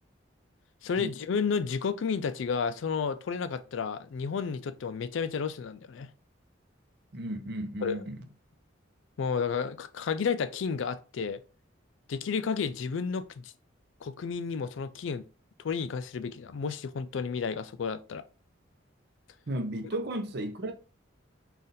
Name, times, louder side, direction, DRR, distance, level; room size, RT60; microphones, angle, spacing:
voice 1, 0.8-6.1 7.8-8.0 9.2-11.4 12.1-13.5 14.0-15.2 15.6-18.2, left 6 dB, 75° left, 0.4 m, -31 dB
voice 2, 7.1-8.2 19.5-20.7, right 1 dB, 55° right, 0.7 m, -34 dB
4.0 x 2.4 x 3.9 m
head